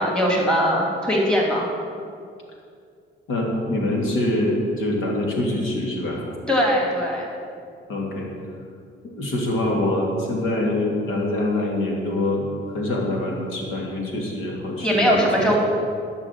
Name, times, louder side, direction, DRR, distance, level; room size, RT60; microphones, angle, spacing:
voice 1, 0.0-1.7 6.5-7.3 14.8-15.6, equal, 5° left, -2 dB, 2.8 m, -20 dB
voice 2, 3.3-6.2 7.9-8.3 9.2-15.3, left 1 dB, 90° left, -1 dB, 2.6 m, -24 dB
12.5 x 5.9 x 8.5 m, 2.3 s
cardioid pair, 90°, 20 cm